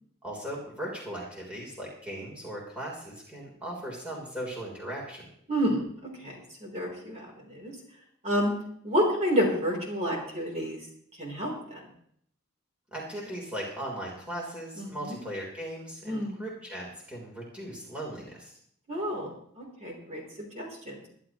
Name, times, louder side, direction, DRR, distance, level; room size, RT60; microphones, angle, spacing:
voice 1, 0.2-5.3 12.9-18.6, right 1 dB, 5° right, -3 dB, 3.6 m, -38 dB
voice 2, 5.5-6.3 6.6-7.7 8.2-8.5 8.8-10.8 11.2-11.8 14.8-15.2 16.0-16.4 18.9-20.2 20.5-21.0, equal, 30° right, -1 dB, 3.6 m, -29 dB
22.5 x 11.5 x 3.1 m, 0.67 s
head